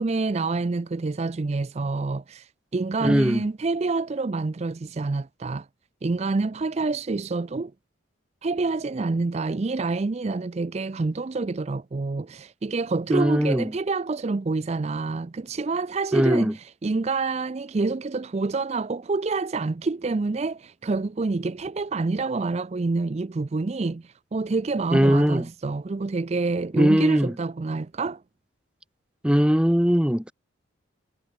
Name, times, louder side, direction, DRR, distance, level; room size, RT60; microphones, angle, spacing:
voice 1, 0.0-5.7 6.0-7.7 8.4-28.2, right 3 dB, 35° right, 0.4 m, -27 dB
voice 2, 3.0-3.5 13.1-13.7 16.1-16.5 24.9-25.4 26.7-27.3 29.2-30.3, equal, 5° right, 0.9 m, -20 dB
head